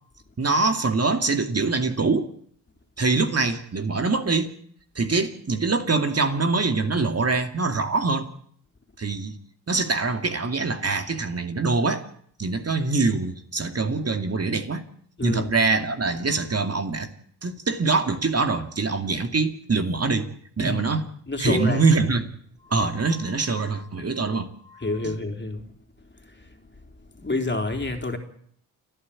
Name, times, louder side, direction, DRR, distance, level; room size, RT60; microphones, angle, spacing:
voice 1, 0.4-2.3 3.0-4.5 5.0-8.3 9.0-9.4 9.7-12.0 12.4-14.8 15.2-17.1 17.4-20.3 20.6-21.1 21.4-22.3 22.7-25.1, right 3 dB, 35° right, 6 dB, 2.4 m, -24 dB
voice 2, 15.2-15.5 20.6-20.9 21.3-21.8 24.8-25.6 27.1-28.2, left 2 dB, 25° left, 5 dB, 3.8 m, -28 dB
29.5 x 10.5 x 8.6 m, 0.64 s
supercardioid pair, 55°, 40 cm